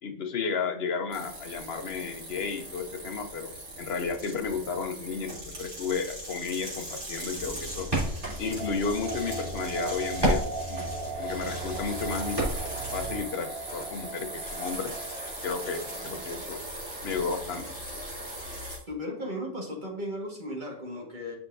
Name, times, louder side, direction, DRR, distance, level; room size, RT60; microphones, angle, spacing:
voice 1, 0.0-7.9 8.4-10.9 11.2-15.0 15.4-16.6 17.0-17.7, left 5 dB, 55° left, 6 dB, 1.0 m, -33 dB
sound 1, 1.1-18.8, right 1 dB, 80° right, 2.6 m, -40 dB
sound 2, 4.6-7.6 7.9-16.4, right 3 dB, 55° right, 2.2 m, -40 dB
sound 3, 7.3-13.2, right 1 dB, 20° right, 3.0 m, -33 dB
voice 2, 18.9-21.3, equal, 40° right, -1 dB, 1.8 m, -35 dB
8.0 x 5.8 x 2.6 m, 0.64 s
omnidirectional pair, 1.3 m